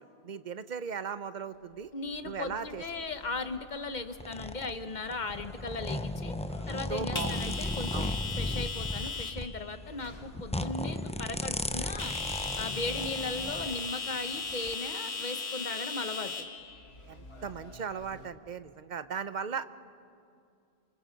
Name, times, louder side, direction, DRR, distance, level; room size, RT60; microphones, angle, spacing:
voice 1, 0.0-1.9 2.2-2.8 6.5-7.6 7.9-8.1 17.1-19.7, right 6 dB, 50° right, 13 dB, 0.8 m, -38 dB
voice 2, 1.9-6.3 6.7-12.1 12.6-16.5, left 3 dB, 45° left, 9 dB, 1.2 m, -37 dB
sound 1, 2.1-18.3, left 4 dB, 75° left, 1.9 m, -40 dB
sound 2, 4.2-13.9 14.5-14.7, left 1 dB, 10° left, 0.4 m, -35 dB
27.0 x 25.0 x 5.2 m, 2.4 s
omnidirectional pair, 1.1 m